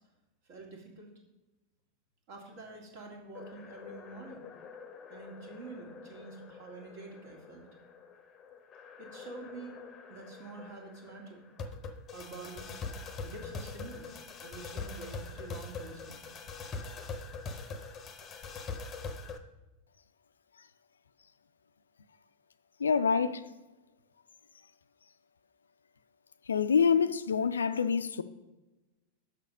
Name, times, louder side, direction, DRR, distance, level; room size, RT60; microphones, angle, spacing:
voice 1, 0.5-1.1 2.3-4.5 5.1-7.7 9.0-9.8 10.1-11.4 12.1-12.7 13.2-14.2 14.4-16.2, right 3 dB, 50° right, 2.0 m, -47 dB
sound 1, 3.4-19.4, left 4 dB, 25° left, 0.8 m, -44 dB
voice 2, 22.8-23.4 26.5-28.2, left 6 dB, 70° left, 0.4 m, -26 dB
6.8 x 5.7 x 5.2 m
figure-of-eight pair, 90°, 0 cm